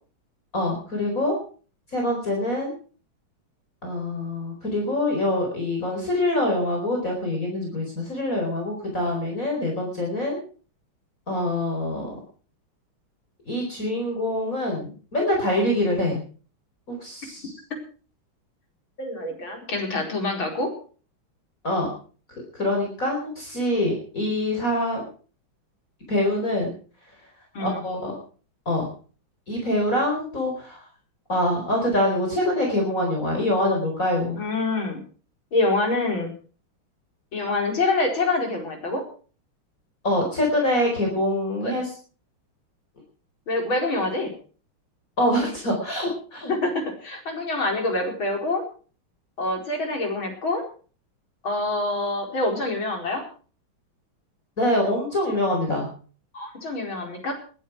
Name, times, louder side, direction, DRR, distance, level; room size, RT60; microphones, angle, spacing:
voice 1, 0.5-1.4 1.9-2.7 3.8-10.4 11.3-12.2 13.5-16.2 16.9-17.5 21.6-21.9 22.5-25.0 26.1-26.7 27.6-28.2 28.7-28.8 29.5-30.8 31.3-34.4 40.0-41.8 45.2-46.5 54.6-55.9, left 1 dB, 40° left, 1 dB, 4.9 m, -25 dB
voice 2, 19.0-20.7 27.5-27.9 34.3-35.0 35.5-36.3 37.3-39.0 41.6-41.7 43.5-44.3 46.5-48.6 49.4-50.6 51.4-53.2 56.3-57.3, left 2 dB, 70° left, 2 dB, 5.5 m, -26 dB
20.5 x 12.0 x 4.8 m, 0.41 s
omnidirectional pair, 2.3 m